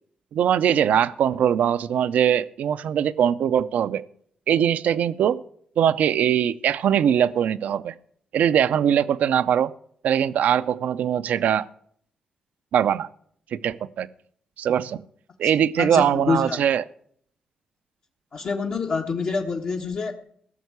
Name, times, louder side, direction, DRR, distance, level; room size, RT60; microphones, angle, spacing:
voice 1, 0.3-4.0 4.5-5.4 5.8-7.9 8.3-9.7 10.0-11.7 12.7-13.1 13.5-14.1 14.6-15.0 15.4-16.8, right 9 dB, 80° right, 0.5 m, -21 dB
voice 2, 15.8-16.6 18.3-20.1, left 4 dB, 65° left, 1.3 m, -26 dB
16.0 x 6.4 x 8.2 m
cardioid pair, 60°, 3 cm